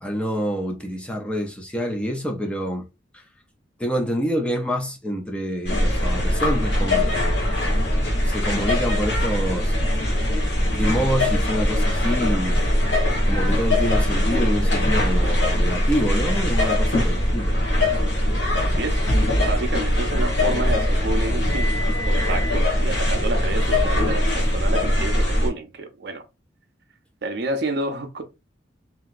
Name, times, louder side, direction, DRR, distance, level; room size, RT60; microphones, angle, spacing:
voice 1, 0.0-2.9 3.1-3.2 3.8-7.4 8.2-9.8 10.7-12.8 13.2-17.6, equal, 5° left, 0.5 m, -27 dB
sound 1, 5.6-25.5, left 1 dB, 70° left, 1.2 m, -21 dB
voice 2, 18.6-19.1 19.4-26.2 27.2-28.2, right 2 dB, 60° right, 0.6 m, -29 dB
2.9 x 2.7 x 2.4 m
head